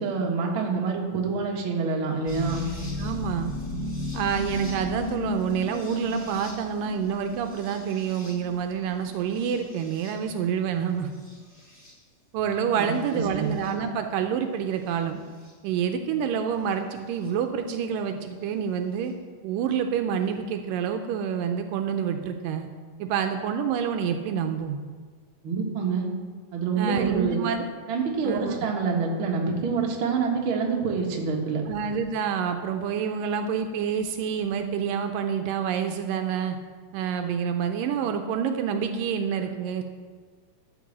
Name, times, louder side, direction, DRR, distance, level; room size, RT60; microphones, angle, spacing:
voice 1, 0.0-2.7 12.8-13.5 25.4-26.1 26.5-27.4 27.9-31.6, right 5 dB, 50° right, 0 dB, 1.8 m, -27 dB
sound 1, 2.2-10.4 11.1-11.9 13.1-13.7 15.4-15.5 17.2-17.3, left 1 dB, 5° left, 2.7 m, -36 dB
voice 2, 3.0-3.5 4.1-11.1 12.3-15.2 15.6-19.1 19.4-22.7 23.0-24.8 26.8-27.6 28.2-28.6 31.7-36.6 36.9-39.8, right 7 dB, 80° right, 6 dB, 2.3 m, -27 dB
12.5 x 5.4 x 7.3 m, 1.6 s
omnidirectional pair, 4.0 m